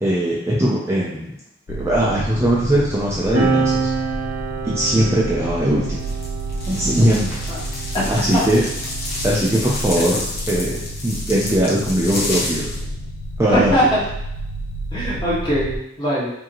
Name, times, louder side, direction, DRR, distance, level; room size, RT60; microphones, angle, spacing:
voice 1, 0.0-1.3 1.7-3.9 4.6-6.0 6.7-7.3 8.1-8.7 9.2-10.8 11.0-12.9 13.4-13.8, right 1 dB, 15° right, -6 dB, 0.6 m, -20 dB
sound 1, 1.7-15.8, right 1 dB, 80° left, 0.4 m, -31 dB
sound 2, 3.3-10.3 11.2-13.1, right 4 dB, 65° right, 0.8 m, -28 dB
sound 3, 6.0-12.8, left 2 dB, 55° left, 1.2 m, -30 dB
voice 2, 7.9-8.4 13.5-14.0 14.9-16.3, equal, 25° left, -8 dB, 1.5 m, -21 dB
4.7 x 2.9 x 3.0 m, 0.81 s
head